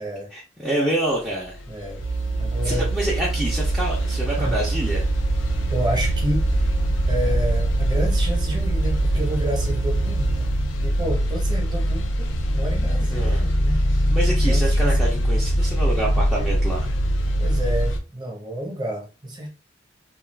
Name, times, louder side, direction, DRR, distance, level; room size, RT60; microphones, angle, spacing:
voice 1, 0.3-1.6 2.6-5.1 13.1-13.4 14.1-16.9, right 1 dB, ahead, -6 dB, 0.5 m, -27 dB
sound 1, 1.5-18.0, equal, 85° left, 0.4 m, -23 dB
voice 2, 1.7-2.0 2.4-2.9 4.4-4.6 5.7-6.5 7.0-10.5 10.8-13.9 14.3-15.2 17.4-19.5, equal, 25° right, 1 dB, 0.8 m, -30 dB
sound 2, 2.0-10.7, right 4 dB, 60° right, 0.5 m, -27 dB
2.3 x 2.3 x 3.3 m, 0.33 s
head